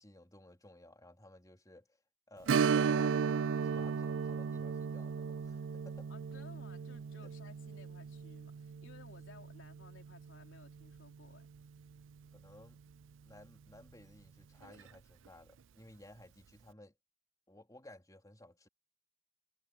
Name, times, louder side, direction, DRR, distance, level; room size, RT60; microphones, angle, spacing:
voice 1, 0.0-2.0 2.3-3.2 3.5-6.1 7.2-7.3 12.3-12.8 13.2-16.9 17.5-18.7, left 1 dB, 20° left, 3.9 m, -56 dB
Strum, 2.5-11.7 12.0-12.1 14.6-14.8 15.3-15.4, right 6 dB, 70° right, 0.4 m, -35 dB
voice 2, 6.1-11.5, left 3 dB, 70° left, 3.7 m, -58 dB
head